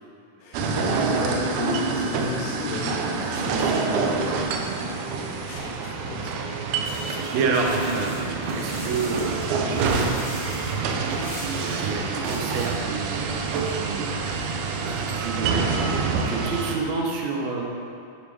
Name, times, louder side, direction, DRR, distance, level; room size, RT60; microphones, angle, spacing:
voice 1, 0.4-4.6 5.0-6.4 6.8-7.0, left 4 dB, 75° left, -1 dB, 2.1 m, -35 dB
sound 1, 0.5-16.8, right 4 dB, 90° right, 2.0 m, -27 dB
sound 2, 6.8-12.7, left 2 dB, 50° left, 1.4 m, -42 dB
voice 2, 7.1-17.6, right 4 dB, 70° right, 0 dB, 1.9 m, -30 dB
8.5 x 3.2 x 4.8 m, 2.4 s
omnidirectional pair, 3.4 m